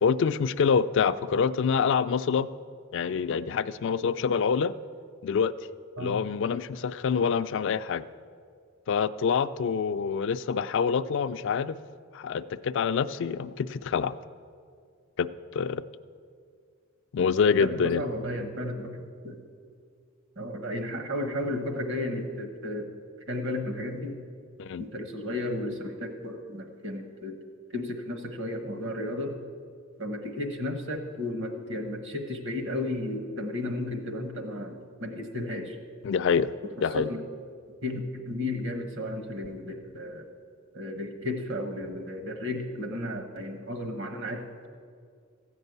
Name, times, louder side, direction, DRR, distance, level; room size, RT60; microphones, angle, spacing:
voice 1, 0.0-2.5 2.9-4.7 5.2-5.5 6.0-8.0 8.9-11.8 12.1-14.1 15.2-15.3 15.5-15.8 17.1-18.0 24.6-24.8 36.0-36.5 36.8-37.1, left 6 dB, 60° left, 13 dB, 0.3 m, -26 dB
voice 2, 17.6-19.4 20.4-22.9 23.3-24.2 24.8-27.4 27.7-29.4 30.0-35.8 36.9-37.2 37.8-40.3 40.7-44.7, left 1 dB, 60° right, 5 dB, 1.3 m, -33 dB
14.5 x 5.4 x 8.0 m, 2.2 s
head